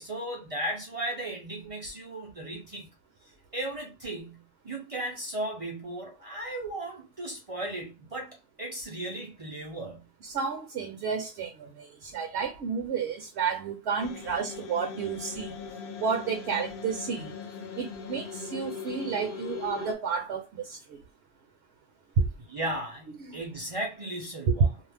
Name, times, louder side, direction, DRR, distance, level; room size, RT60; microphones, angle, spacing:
voice 1, 0.0-2.9 3.5-10.1 22.4-24.8, right 1 dB, 50° right, 0.4 m, -36 dB
voice 2, 10.2-15.5 16.0-17.3 17.8-21.0 23.3-23.4, right 6 dB, 65° right, 0.8 m, -32 dB
sound 1, 14.0-19.9, left 5 dB, 60° left, 0.6 m, -40 dB
2.5 x 2.0 x 3.3 m
omnidirectional pair, 1.4 m